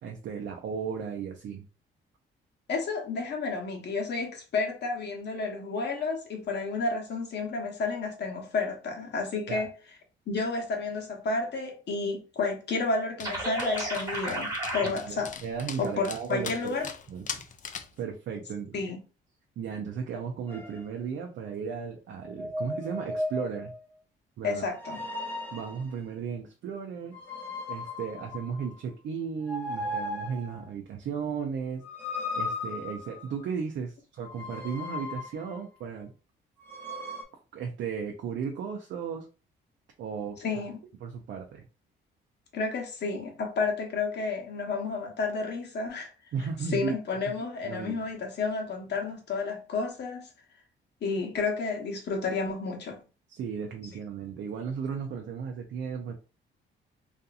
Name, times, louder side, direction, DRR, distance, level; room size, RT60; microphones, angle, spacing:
voice 1, 0.0-1.6 9.5-9.7 14.8-16.8 17.1-17.4 18.0-18.8 19.6-23.7 24.4-24.7 25.5-27.1 27.7-31.8 32.4-36.1 37.5-39.3 40.0-40.6 41.0-41.6 46.3-46.9 47.6-48.0 53.3-56.1, right 6 dB, 65° right, 0.5 m, -35 dB
voice 2, 2.7-9.7 10.3-15.3 15.8-16.9 18.7-19.0 24.4-25.0 40.4-40.8 42.5-46.1 46.7-50.3 51.0-53.0, left 4 dB, 60° left, 1.0 m, -31 dB
Dog, 13.2-18.0, left 7 dB, 40° left, 0.4 m, -41 dB
sound 1, 13.2-14.9, right 1 dB, 15° right, 1.1 m, -33 dB
sound 2, 20.5-20.8 22.2-23.8 24.7-25.9 27.1-28.9 29.4-30.6 31.8-33.4 34.2-35.6 36.6-37.2, left 2 dB, 10° left, 1.0 m, -36 dB
2.7 x 2.5 x 2.4 m
cardioid pair, 90°, 20 cm